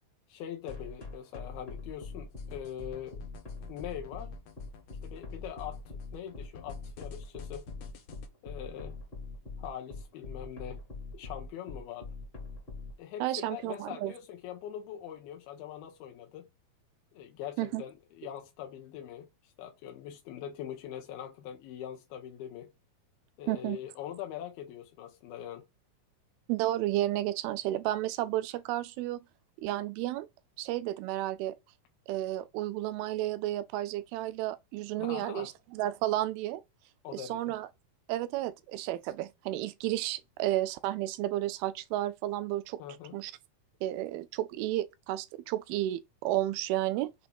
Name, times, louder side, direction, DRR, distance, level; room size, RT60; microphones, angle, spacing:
voice 1, 0.3-3.2 3.7-4.4 5.0-5.8 6.1-7.7 8.4-9.0 9.6-10.8 11.1-12.1 13.0-16.5 17.1-22.7 23.4-25.7 35.0-35.5 37.0-37.5 42.8-43.2, left 10 dB, 90° left, 2.8 m, -42 dB
sound 1, 0.7-12.9, left 4 dB, 25° left, 1.3 m, -42 dB
sound 2, 2.3-8.3, left 6 dB, 70° left, 1.5 m, -53 dB
voice 2, 13.2-14.1 17.6-17.8 23.5-23.8 26.5-29.2 29.6-30.3 30.6-31.6 32.1-36.6 37.1-37.7 38.1-42.8 43.1-43.3 43.8-47.3, right 15 dB, 85° right, 2.4 m, -32 dB
7.0 x 3.0 x 5.2 m
omnidirectional pair, 4.4 m